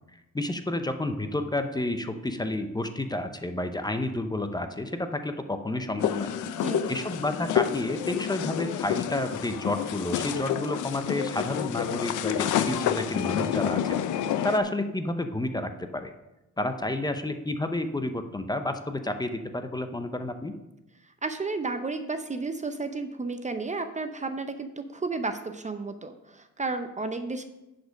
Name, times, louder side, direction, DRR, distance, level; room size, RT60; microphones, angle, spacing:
voice 1, 0.3-6.3 6.9-16.1 16.6-20.5, left 1 dB, 15° left, 8 dB, 0.7 m, -30 dB
sound 1, 6.0-14.6, left 10 dB, 80° left, 0.7 m, -29 dB
voice 2, 6.6-6.9 21.2-27.4, right 3 dB, 25° right, 9 dB, 0.6 m, -32 dB
10.0 x 5.2 x 5.1 m, 0.96 s
cardioid pair, 90°, 30 cm